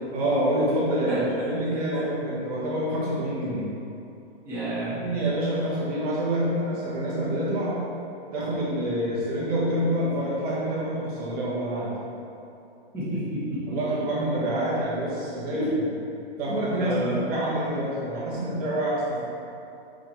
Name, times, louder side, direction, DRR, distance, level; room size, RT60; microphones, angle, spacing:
voice 1, 0.1-3.7 4.9-7.8 8.3-11.9 13.7-15.8 16.4-19.3, right 1 dB, 40° right, -7 dB, 1.5 m, -27 dB
voice 2, 4.4-5.0 12.9-13.6 15.6-15.7 16.5-17.2, right 1 dB, 10° right, -13 dB, 1.3 m, -30 dB
5.9 x 5.2 x 3.2 m, 2.7 s
hypercardioid pair, 155°, 31 cm